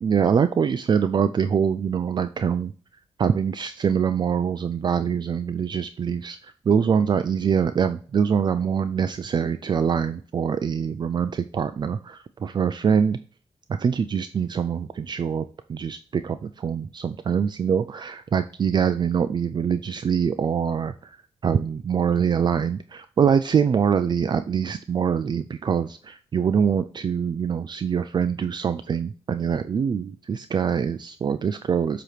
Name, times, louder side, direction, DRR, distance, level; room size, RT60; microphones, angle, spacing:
voice 1, 0.0-2.7 3.2-13.2 13.8-21.2 21.4-32.0, right 7 dB, 45° right, 10 dB, 0.4 m, -24 dB
7.8 x 3.0 x 4.9 m, 0.40 s
cardioid pair, 105°, 10 cm